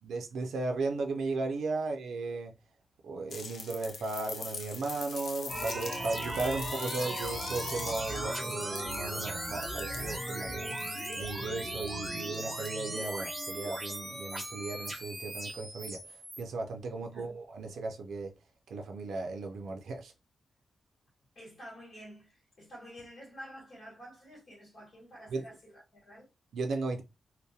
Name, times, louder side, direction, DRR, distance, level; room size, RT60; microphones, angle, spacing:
voice 1, 0.0-2.5 3.0-10.7 11.2-18.3 18.7-20.1 25.3-25.4 26.5-27.0, right 3 dB, 90° right, 0.4 m, -36 dB
sound 1, 3.3-13.7 15.1-15.2, left 5 dB, 65° left, 0.4 m, -44 dB
sound 2, 5.5-16.4, right 1 dB, 20° right, 0.9 m, -37 dB
voice 2, 16.9-17.3 21.3-26.3, equal, 45° left, 1.3 m, -50 dB
2.3 x 2.1 x 2.7 m
wide cardioid pair, 125°, 0 cm